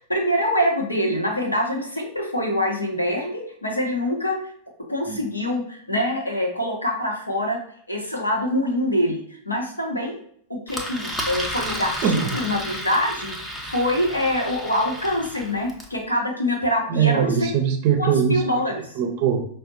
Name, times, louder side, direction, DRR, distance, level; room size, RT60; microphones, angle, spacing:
voice 1, 0.1-4.4 4.9-7.6 7.9-10.2 10.5-17.5 18.0-18.9, left 1 dB, 85° left, 0 dB, 0.7 m, -25 dB
Engine, 10.7-16.0, equal, 5° left, 0.6 m, -32 dB
voice 2, 12.0-12.3 16.9-18.4 19.0-19.5, right 7 dB, 45° right, 5 dB, 0.5 m, -21 dB
5.0 x 2.0 x 2.6 m, 0.63 s
figure-of-eight pair, 90°, 0 cm